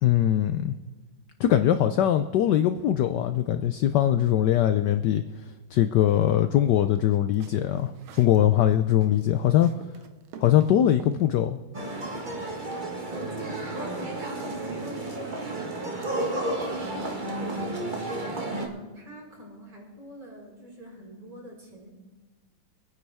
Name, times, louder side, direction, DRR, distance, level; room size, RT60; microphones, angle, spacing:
voice 1, 0.0-0.7 1.4-5.2 5.7-9.7 10.4-11.6, left 11 dB, 75° left, 9 dB, 1.0 m, -22 dB
sound 1, 6.9-8.4 8.7-11.2, right 7 dB, 75° right, 1.7 m, -47 dB
sound 2, 11.7-18.7, right 2 dB, 25° right, 1.4 m, -32 dB
voice 2, 13.1-17.7 18.1-21.9, equal, 50° right, -4 dB, 5.1 m, -45 dB
25.5 x 9.7 x 3.5 m, 1.3 s
omnidirectional pair, 2.3 m